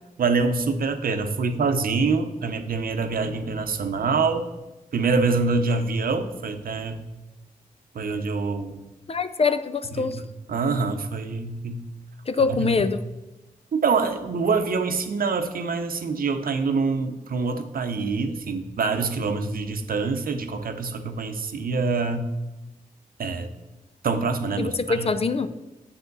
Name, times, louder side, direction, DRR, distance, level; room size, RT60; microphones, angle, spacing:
voice 1, 0.2-4.5 4.9-7.0 7.9-8.8 10.0-10.1 10.5-11.9 12.5-12.8 13.7-22.3 23.2-23.5 24.0-25.1, right 4 dB, 75° right, 8 dB, 0.7 m, -25 dB
voice 2, 9.1-10.2 12.3-13.0 24.6-25.5, left 4 dB, 40° left, 12 dB, 0.5 m, -24 dB
7.3 x 6.9 x 4.0 m, 1.1 s
cardioid pair, 65°, 15 cm